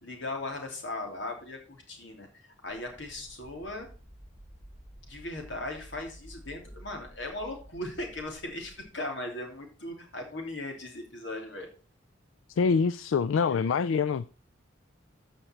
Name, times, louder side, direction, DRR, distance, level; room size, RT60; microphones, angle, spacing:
voice 1, 0.0-3.9 5.0-11.7, left 2 dB, 65° left, 2.9 m, -38 dB
sound 1, 2.7-8.8, equal, 25° right, 3.9 m, -51 dB
voice 2, 12.6-14.3, left 5 dB, 85° left, 0.4 m, -25 dB
14.5 x 5.1 x 4.4 m
head